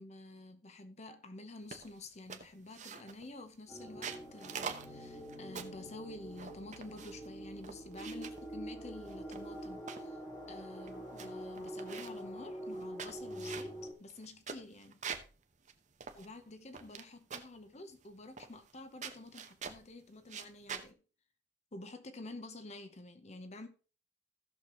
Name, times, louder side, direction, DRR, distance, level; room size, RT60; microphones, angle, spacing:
voice 1, 0.0-10.2 10.5-15.0 16.1-21.0 21.7-23.7, left 2 dB, 40° left, 0.8 m, -49 dB
sound 1, 1.7-2.0 2.3-3.3 3.8-5.8 6.3-7.3 7.6-8.4 9.1-10.1 10.6-10.7 10.9-11.3 11.5-12.2 12.7-15.3 15.7-15.8 16.0-17.0 17.3-17.6 18.4-18.8 19.0-19.8 20.2-20.9, right 6 dB, 45° right, 1.0 m, -45 dB
sound 2, 3.7-13.9, equal, 25° left, 2.2 m, -45 dB
16.0 x 6.5 x 3.0 m
head